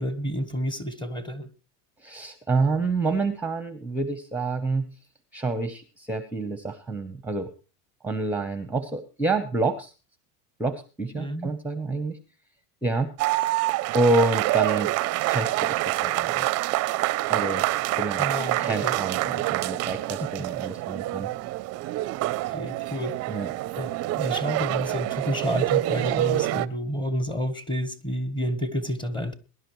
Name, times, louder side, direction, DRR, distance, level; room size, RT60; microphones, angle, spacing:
voice 1, 0.0-1.5 11.2-11.5 18.2-19.0 20.4-20.5 22.0-22.1 22.5-23.3 23.8-29.4, equal, 10° left, 1.2 m, -30 dB
voice 2, 2.0-4.9 5.3-7.5 8.0-9.9 10.6-12.2 12.8-13.1 13.9-14.9 15.3-16.5 17.3-18.3 18.6-21.3 23.3-23.5, right 3 dB, 5° right, 0.8 m, -28 dB
sound 1, 13.2-26.7, right 17 dB, 40° right, 0.5 m, -26 dB
21.5 x 11.0 x 3.1 m
supercardioid pair, 130°, 40 cm